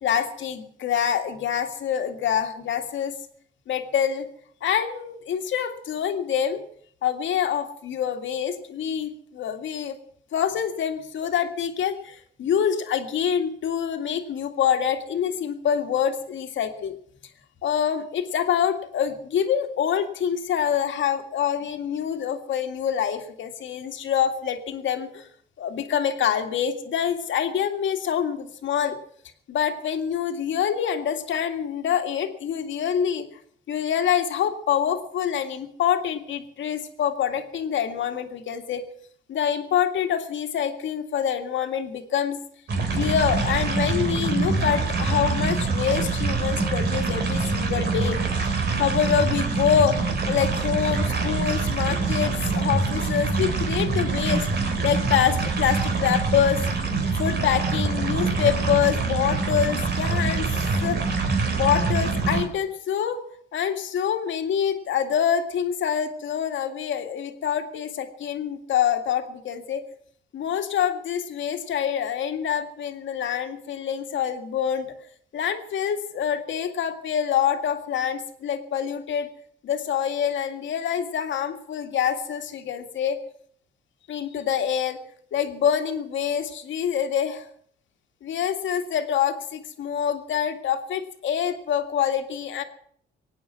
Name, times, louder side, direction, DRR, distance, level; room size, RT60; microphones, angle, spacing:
voice 1, 0.0-3.1 3.7-4.3 4.6-6.6 7.0-10.0 10.3-16.9 17.6-25.3 25.6-29.0 29.5-33.3 33.7-38.8 39.3-42.4 42.9-48.2 48.8-50.0 50.3-54.5 54.8-56.6 57.1-60.5 60.8-61.0 61.5-63.2 63.5-69.8 70.3-74.9 75.3-79.3 79.6-83.2 84.1-85.0 85.3-87.4 88.2-92.6, left 8 dB, 70° left, 5 dB, 2.1 m, -26 dB
sound 1, 42.7-62.4, right 4 dB, 55° right, 3.3 m, -25 dB
24.0 x 9.2 x 5.9 m, 0.63 s
cardioid pair, 90°, 20 cm